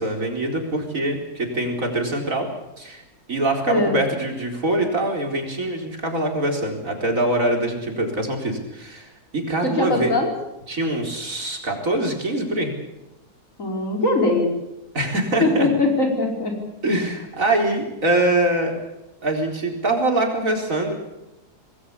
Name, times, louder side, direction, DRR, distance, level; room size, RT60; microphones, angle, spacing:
voice 1, 0.0-2.5 2.8-3.0 3.3-10.1 10.7-12.7 14.9-15.7 16.8-18.7 19.2-20.9, right 1 dB, 55° right, 2 dB, 4.7 m, -23 dB
voice 2, 3.7-4.0 9.6-10.3 13.6-14.5 15.4-16.6, left 2 dB, 55° left, 1 dB, 5.3 m, -21 dB
26.5 x 20.0 x 7.0 m, 0.96 s
omnidirectional pair, 1.7 m